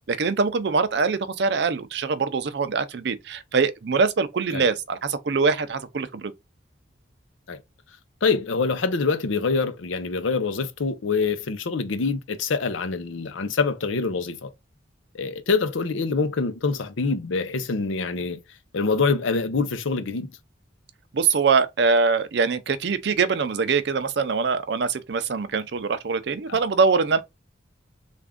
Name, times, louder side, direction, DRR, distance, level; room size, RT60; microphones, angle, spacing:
voice 1, 0.1-6.3 21.1-27.2, right 5 dB, 60° right, 0.4 m, -23 dB
voice 2, 8.2-14.5 15.1-18.4 18.7-20.3 26.5-26.6, left 4 dB, 85° left, 0.6 m, -25 dB
3.5 x 2.5 x 3.5 m
head